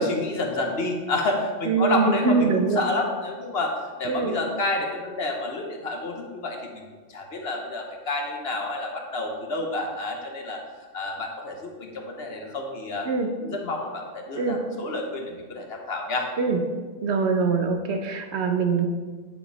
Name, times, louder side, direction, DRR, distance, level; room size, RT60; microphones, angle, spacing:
voice 1, 0.0-6.8 7.1-10.6 10.9-13.1 13.4-16.3, left 2 dB, 60° left, 2 dB, 1.1 m, -29 dB
voice 2, 1.7-2.8 4.1-4.3 13.0-13.3 14.4-14.6 16.4-16.6 17.0-18.9, right 4 dB, 65° right, 5 dB, 0.9 m, -23 dB
9.0 x 4.9 x 4.0 m, 1.4 s
omnidirectional pair, 1.2 m